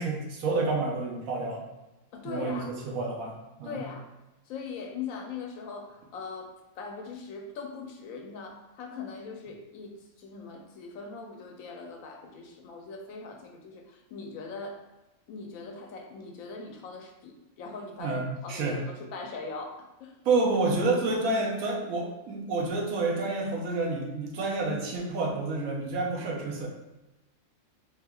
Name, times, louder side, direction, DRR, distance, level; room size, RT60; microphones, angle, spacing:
voice 1, 0.0-1.7 2.2-3.8 18.0-18.8 20.2-26.7, right 3 dB, 85° right, -1 dB, 1.1 m, -29 dB
voice 2, 2.1-2.8 3.6-4.1 4.5-14.8 15.3-20.2, left 4 dB, 80° left, 3 dB, 1.0 m, -41 dB
3.5 x 2.8 x 2.3 m, 1.0 s
omnidirectional pair, 1.4 m